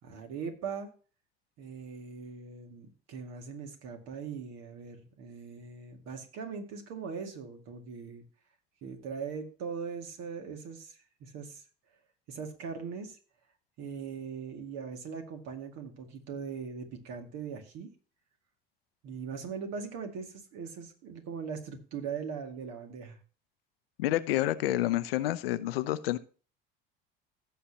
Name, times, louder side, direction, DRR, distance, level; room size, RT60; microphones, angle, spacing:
voice 1, 0.0-0.9 1.6-8.2 8.8-11.6 12.3-13.2 13.8-17.9 19.0-23.2, right 6 dB, 60° right, 4 dB, 2.3 m, -40 dB
voice 2, 24.0-26.2, left 14 dB, 80° left, 14 dB, 0.7 m, -29 dB
16.0 x 6.7 x 2.9 m, 0.38 s
hypercardioid pair, 65°, 29 cm